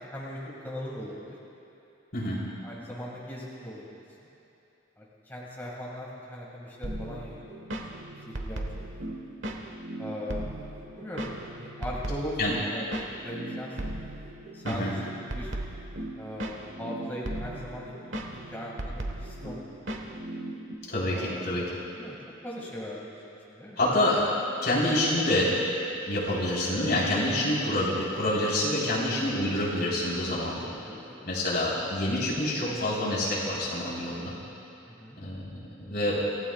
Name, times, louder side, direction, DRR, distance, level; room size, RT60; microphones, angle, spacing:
voice 1, 0.0-1.4 2.6-4.0 5.0-7.6 8.3-8.9 10.0-10.5 10.9-13.9 14.5-15.5 16.1-20.2 21.1-21.4 21.9-22.2 22.4-23.9 30.9-31.3 31.7-31.8 34.9-35.2, equal, 10° left, -6 dB, 2.0 m, -39 dB
sound 1, 6.8-20.7, right 1 dB, 70° right, 1.3 m, -37 dB
voice 2, 20.9-21.8 23.8-24.2 24.6-25.5 26.0-30.7 31.2-34.3 35.2-35.5 35.8-36.3, left 1 dB, 55° left, -6 dB, 3.9 m, -27 dB
27.0 x 16.0 x 2.4 m, 2.9 s
head